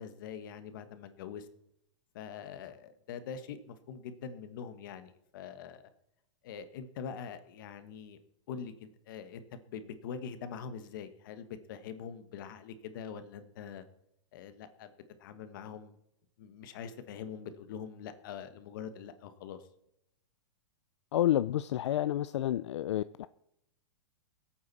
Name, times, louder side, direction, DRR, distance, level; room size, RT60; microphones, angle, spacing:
voice 1, 0.0-1.5 2.1-5.8 6.4-8.2 8.5-13.8 14.3-14.9 15.2-16.0 16.4-19.6, left 7 dB, 45° left, 1.3 m, -44 dB
voice 2, 21.1-23.3, left 12 dB, 70° left, 0.5 m, -29 dB
22.5 x 8.7 x 4.1 m
supercardioid pair, 170°, 15 cm